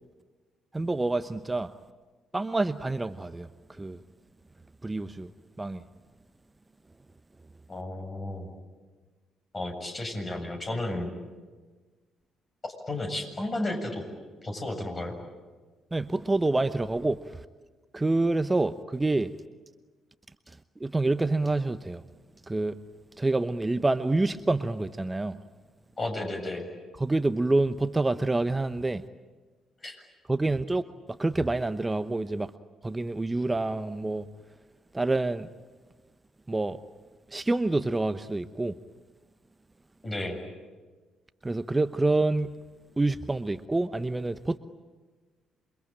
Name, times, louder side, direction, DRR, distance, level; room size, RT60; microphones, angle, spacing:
voice 1, 0.7-1.7 2.3-4.0 4.8-5.3 5.6-5.8 15.9-17.4 17.9-19.3 20.8-22.0 22.5-22.8 23.2-25.4 27.0-29.0 30.3-30.8 31.2-32.5 32.8-34.3 34.9-35.5 36.5-36.8 37.3-38.7 41.4-42.6 43.0-44.6, right 2 dB, 20° right, 12 dB, 1.0 m, -27 dB
voice 2, 7.7-8.5 9.5-11.1 12.9-14.0 14.4-15.2 26.0-26.7 29.8-30.0 40.0-40.4, left 1 dB, 35° left, 3 dB, 7.5 m, -33 dB
28.0 x 23.5 x 9.0 m, 1.4 s
hypercardioid pair, 45°, 0 cm